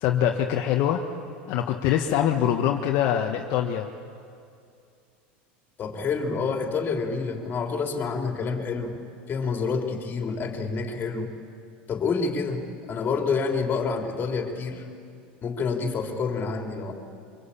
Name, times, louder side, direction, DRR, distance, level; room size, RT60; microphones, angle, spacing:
voice 1, 0.0-1.0 1.5-3.9, left 10 dB, 60° left, 2 dB, 1.5 m, -24 dB
voice 2, 5.8-11.3 11.9-14.8 15.4-16.9, left 4 dB, 35° left, 3 dB, 3.8 m, -28 dB
24.0 x 23.5 x 8.6 m, 2.4 s
hypercardioid pair, 95°, 6 cm